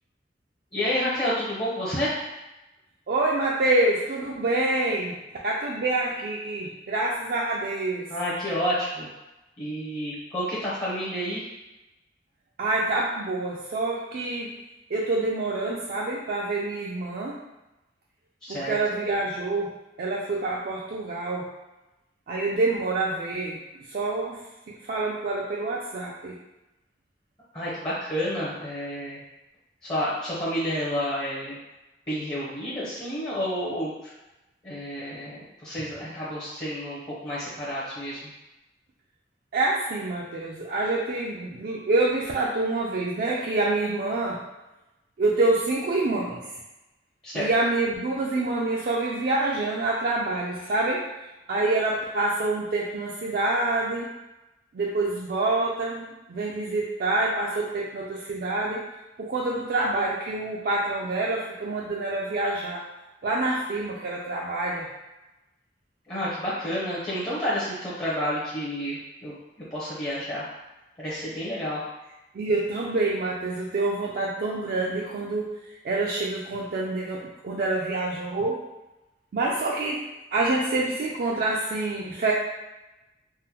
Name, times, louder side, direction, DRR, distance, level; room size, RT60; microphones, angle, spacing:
voice 1, 0.7-2.2 8.1-9.1 9.6-11.4 18.4-18.7 27.5-29.2 29.8-31.6 32.1-34.1 34.6-38.3 47.2-47.5 66.1-69.3 69.7-70.5 71.0-71.8, equal, 25° left, -9 dB, 0.6 m, -30 dB
voice 2, 3.1-5.2 5.4-8.1 12.6-14.5 14.9-17.3 18.5-21.5 22.3-23.6 23.9-24.4 24.9-26.4 39.5-44.4 45.2-46.4 47.3-51.0 51.5-54.1 54.7-58.8 59.2-62.8 63.2-64.9 72.3-75.5 75.8-78.6 79.3-80.0 80.3-82.3, right 2 dB, 55° right, -4 dB, 0.3 m, -26 dB
3.6 x 2.1 x 2.8 m, 1.0 s
head